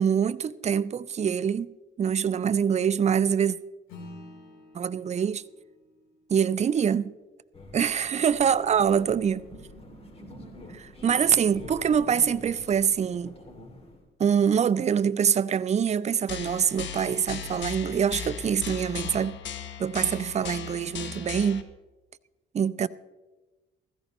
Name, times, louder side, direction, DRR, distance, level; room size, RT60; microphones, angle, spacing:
voice 1, 0.0-1.7 2.0-3.6 4.7-5.4 6.3-7.1 7.7-9.4 10.7-13.3 14.2-19.4 19.8-21.6 22.5-22.9, right 7 dB, 35° right, 0.5 m, -24 dB
Acoustic guitar / Strum, 3.9-8.7, left 2 dB, 90° left, 3.6 m, -51 dB
sound 1, 7.5-14.0, left 1 dB, 30° left, 2.5 m, -46 dB
sound 2, 16.3-21.6, left 8 dB, 65° left, 1.1 m, -37 dB
16.0 x 14.5 x 3.0 m
cardioid pair, 90°, 20 cm